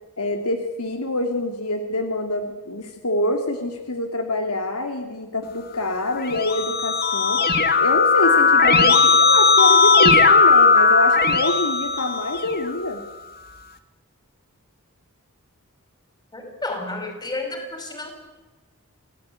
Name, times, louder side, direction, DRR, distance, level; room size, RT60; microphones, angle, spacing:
voice 1, 0.2-7.4 7.8-13.0, left 1 dB, 90° left, 6 dB, 2.5 m, -26 dB
Keyboard (musical), 6.1-12.7, left 4 dB, 45° left, 1.8 m, -17 dB
voice 2, 16.3-18.1, left 2 dB, 20° left, 5 dB, 5.3 m, -31 dB
27.0 x 17.0 x 9.5 m, 1.1 s
head